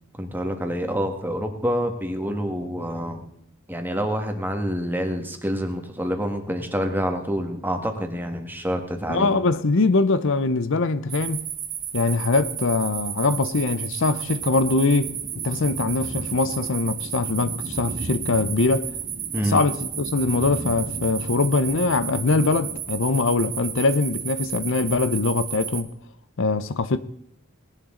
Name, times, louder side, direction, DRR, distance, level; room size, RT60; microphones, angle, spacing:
voice 1, 0.1-3.3 3.7-9.4 19.3-19.6, equal, 10° right, 1.7 m, -27 dB
voice 2, 9.1-11.5 11.9-15.1 15.4-18.9 19.4-25.9 26.4-27.0, left 3 dB, 65° left, 0.7 m, -22 dB
sound 1, 11.1-25.8, right 10 dB, 40° right, 1.4 m, -33 dB
sound 2, 14.3-22.8, right 1 dB, 55° right, 1.5 m, -39 dB
19.5 x 11.5 x 3.8 m
head